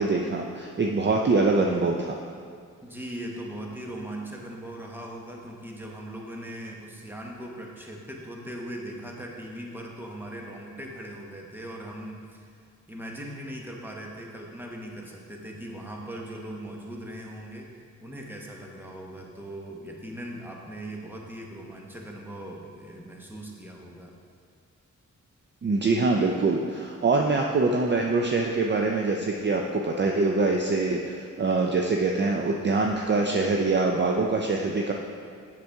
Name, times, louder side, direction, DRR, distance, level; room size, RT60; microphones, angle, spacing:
voice 1, 0.0-2.2 25.6-34.9, right 3 dB, 35° right, 1 dB, 0.5 m, -24 dB
voice 2, 2.8-12.5 12.9-17.7 18.0-24.1, right 1 dB, 5° right, -1 dB, 1.1 m, -39 dB
7.9 x 6.8 x 3.5 m, 2.2 s
wide cardioid pair, 90°, 31 cm